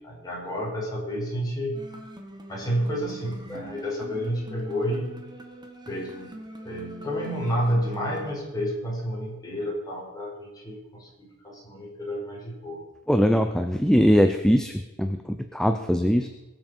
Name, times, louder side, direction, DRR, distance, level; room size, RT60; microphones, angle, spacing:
voice 1, 0.0-1.8 2.5-5.1 5.9-6.3 6.6-11.1 11.4-12.8, equal, 20° left, -4 dB, 5.4 m, -30 dB
sound 1, 1.7-8.4, right 1 dB, 20° right, 1.7 m, -43 dB
voice 2, 13.1-16.3, equal, 5° left, 6 dB, 0.6 m, -21 dB
22.5 x 7.6 x 5.4 m, 1.1 s
head